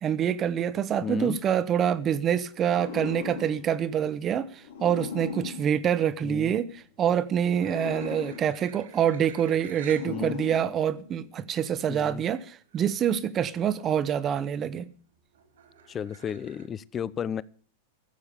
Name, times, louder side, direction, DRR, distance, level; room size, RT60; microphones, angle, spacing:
voice 1, 0.0-4.5 4.8-14.9, right 9 dB, 30° right, 1.1 m, -26 dB
voice 2, 1.0-1.4 6.2-6.5 10.0-10.3 11.9-12.2 15.9-17.4, left 8 dB, 30° left, 0.6 m, -33 dB
sound 1, 2.5-6.7 7.4-11.4, left 7 dB, 75° left, 2.9 m, -40 dB
sound 2, 7.6-10.1 10.8-10.9 12.3-12.4 12.6-13.0 13.4-13.9 14.4-16.7, right 7 dB, 75° right, 3.8 m, -51 dB
15.0 x 7.2 x 8.3 m
hypercardioid pair, 100°, 0 cm